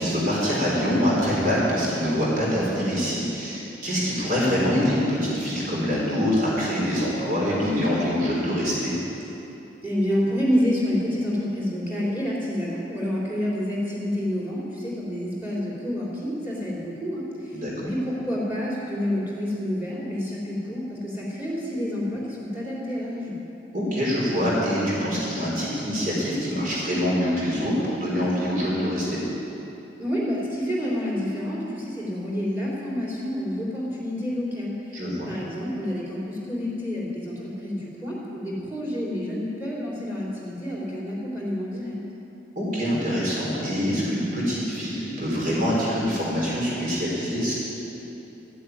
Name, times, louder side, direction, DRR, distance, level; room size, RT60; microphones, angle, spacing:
voice 1, 0.0-9.0 17.5-17.7 23.7-29.2 34.9-35.3 42.6-47.5, equal, 50° right, -6 dB, 4.2 m, -25 dB
voice 2, 9.8-23.4 30.0-35.0 35.3-42.0, equal, 10° right, -6 dB, 3.7 m, -28 dB
14.0 x 7.7 x 9.4 m, 3.0 s
head